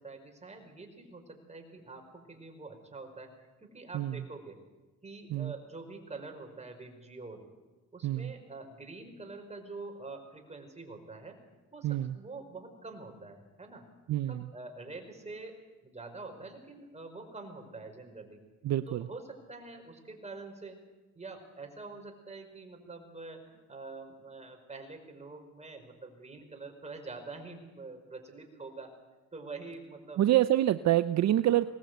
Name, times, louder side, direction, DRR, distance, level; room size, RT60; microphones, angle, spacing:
voice 1, 0.0-4.6 5.0-7.5 7.9-11.4 11.7-13.9 14.3-15.6 15.8-18.4 18.9-20.8 21.2-28.9 29.3-30.2 31.4-31.6, right 3 dB, 20° right, 4 dB, 5.3 m, -46 dB
voice 2, 11.8-12.1 14.1-14.5 18.6-19.1 30.2-31.6, right 13 dB, 60° right, 13 dB, 0.6 m, -26 dB
23.0 x 19.0 x 8.1 m, 1.2 s
cardioid pair, 90°, 30 cm